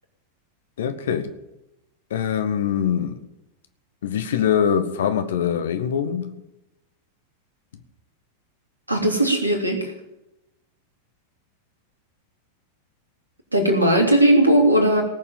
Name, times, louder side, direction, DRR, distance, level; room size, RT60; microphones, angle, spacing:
voice 1, 0.8-1.3 2.1-3.2 4.0-6.3, left 8 dB, 60° left, 9 dB, 1.4 m, -23 dB
voice 2, 8.9-9.9 13.5-15.0, right 1 dB, 85° right, 2 dB, 3.2 m, -18 dB
18.5 x 7.2 x 9.0 m, 0.91 s
figure-of-eight pair, 90°, 0 cm